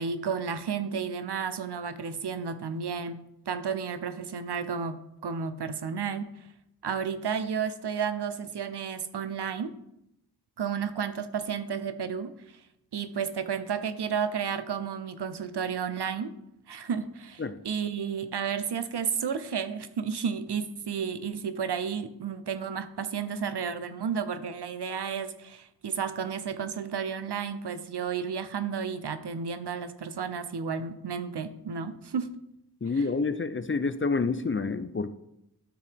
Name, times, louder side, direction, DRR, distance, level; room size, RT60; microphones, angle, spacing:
voice 1, 0.0-5.0 5.2-6.3 6.8-9.7 10.6-12.3 12.9-16.3 16.7-32.3, right 6 dB, 85° right, 11 dB, 0.6 m, -32 dB
voice 2, 32.8-35.1, left 4 dB, 30° left, 12 dB, 0.5 m, -28 dB
12.5 x 4.7 x 3.5 m, 0.83 s
wide cardioid pair, 65°, 39 cm